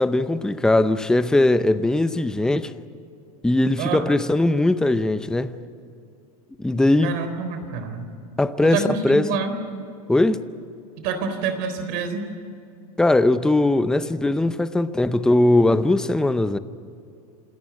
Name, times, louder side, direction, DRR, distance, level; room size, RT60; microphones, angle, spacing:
voice 1, 0.0-2.7 3.4-5.6 6.6-7.2 8.4-9.3 10.1-10.4 13.0-16.6, left 2 dB, 5° left, 0.6 m, -20 dB
voice 2, 7.0-8.1 8.6-9.5 11.0-12.2, right 5 dB, 55° right, 4.0 m, -27 dB
27.5 x 13.5 x 9.7 m
supercardioid pair, 130°, 20 cm